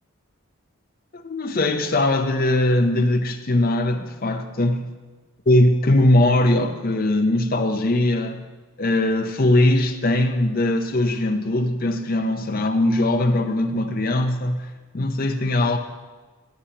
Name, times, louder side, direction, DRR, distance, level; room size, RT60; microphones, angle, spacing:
voice 1, 1.1-4.9 5.5-8.5 8.8-15.8, left 1 dB, 45° left, 7 dB, 0.6 m, -20 dB
13.0 x 9.4 x 2.9 m, 1.3 s
head